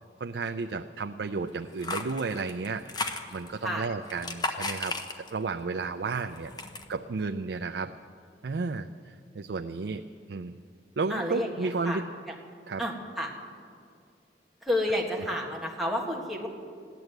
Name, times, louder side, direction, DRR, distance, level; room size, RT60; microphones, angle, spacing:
voice 1, 0.2-6.5 6.9-7.9 8.4-10.0 10.3-10.5 11.0-12.0 12.7-12.8, right 4 dB, 70° right, 7 dB, 0.5 m, -33 dB
sound 1, 1.5-3.6 4.0-5.5 5.9-6.9, left 3 dB, 25° left, 0.8 m, -35 dB
voice 2, 11.1-12.0 12.3-12.4 12.8-13.3 14.6-16.5, left 1 dB, ahead, -2 dB, 1.7 m, -30 dB
15.5 x 11.0 x 8.0 m, 2.3 s
head